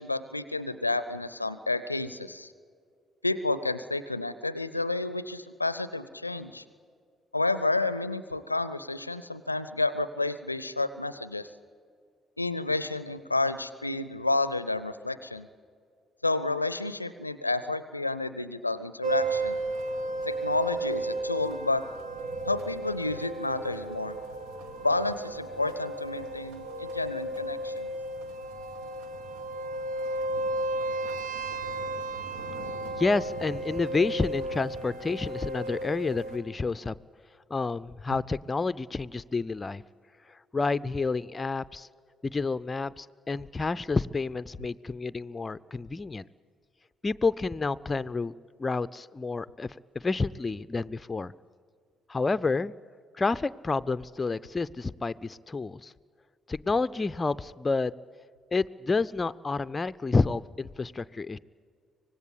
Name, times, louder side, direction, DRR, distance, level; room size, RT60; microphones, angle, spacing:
voice 1, 0.0-2.5 3.2-6.6 7.3-11.5 12.4-15.5 16.2-19.6 20.3-21.8 22.5-24.2 24.8-27.9, left 2 dB, 90° left, 15 dB, 0.5 m, -30 dB
sound 1, 19.0-36.4, right 2 dB, 65° right, 1.7 m, -34 dB
voice 2, 33.0-36.9 37.5-39.8 40.5-41.9 42.2-46.3 47.0-48.3 48.6-49.7 49.9-51.3 52.1-52.7 53.2-55.9 56.5-57.9 58.5-61.4, left 3 dB, 25° left, 16 dB, 0.5 m, -29 dB
25.0 x 19.0 x 8.5 m, 2.1 s
figure-of-eight pair, 45°, 0 cm